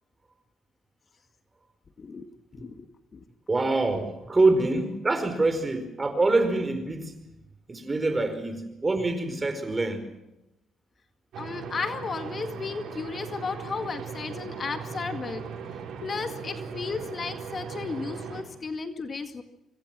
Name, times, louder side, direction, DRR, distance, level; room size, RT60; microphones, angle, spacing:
voice 1, 2.5-2.9 3.1-3.2 11.4-15.4 16.0-19.4, left 4 dB, 40° left, 2.0 m, -34 dB
voice 2, 3.5-7.1 7.7-10.0, right 2 dB, 25° right, 5.0 m, -25 dB
sound 1, 11.3-18.4, right 6 dB, 75° right, 6.7 m, -38 dB
26.0 x 24.5 x 6.3 m
cardioid pair, 90°, 0 cm